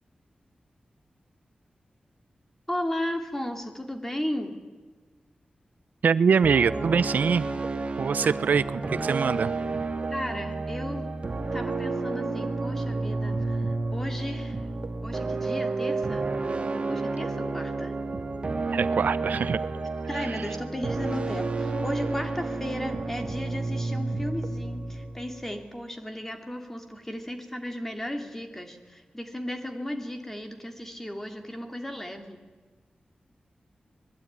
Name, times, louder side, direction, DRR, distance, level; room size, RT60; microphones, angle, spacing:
voice 1, 2.7-4.6 8.2-8.3 10.1-11.1 11.5-14.6 15.0-16.3 16.9-18.0 20.1-32.4, left 1 dB, 10° left, 5 dB, 2.9 m, -35 dB
voice 2, 6.0-7.5 8.0-9.5 18.7-19.6 20.1-20.4, right 6 dB, 90° right, 15 dB, 0.8 m, -24 dB
sound 1, 6.4-25.6, right 3 dB, 40° right, 2.1 m, -31 dB
25.0 x 21.0 x 9.7 m, 1.3 s
wide cardioid pair, 150°, 3 cm